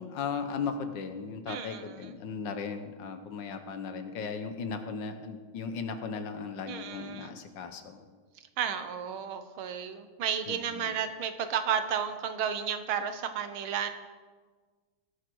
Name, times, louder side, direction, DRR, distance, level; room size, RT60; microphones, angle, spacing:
voice 1, 0.0-8.0 10.5-10.9, left 5 dB, 65° left, 8 dB, 1.6 m, -37 dB
voice 2, 1.5-2.1 6.7-7.4 8.6-13.9, right 8 dB, 80° right, 9 dB, 1.8 m, -33 dB
19.5 x 8.5 x 4.6 m, 1.4 s
omnidirectional pair, 2.3 m